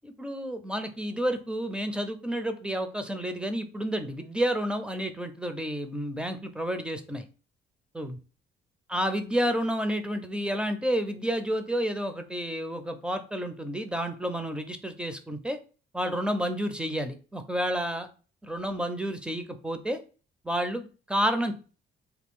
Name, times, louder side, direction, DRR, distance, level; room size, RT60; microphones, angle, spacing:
voice 1, 0.0-7.2 7.9-8.2 8.9-15.6 15.9-18.1 18.4-20.0 20.4-21.5, equal, 5° right, 8 dB, 0.5 m, -30 dB
3.3 x 2.3 x 3.6 m, 0.37 s
cardioid pair, 90°, 20 cm